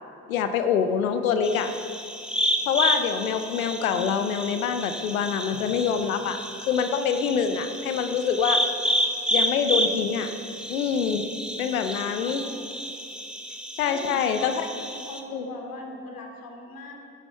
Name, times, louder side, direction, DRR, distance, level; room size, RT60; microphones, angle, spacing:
voice 1, 0.3-1.7 2.7-6.4 6.7-8.6 9.3-10.3 10.7-11.2 11.6-12.5 13.8-14.7 15.3-15.5, left 7 dB, 90° left, 9 dB, 0.7 m, -25 dB
sound 1, 1.4-15.2, equal, ahead, 1.4 m, -30 dB
voice 2, 12.2-12.6 13.8-16.9, left 2 dB, 55° left, 1 dB, 2.6 m, -40 dB
12.5 x 10.0 x 5.5 m, 2.7 s
hypercardioid pair, 45°, 40 cm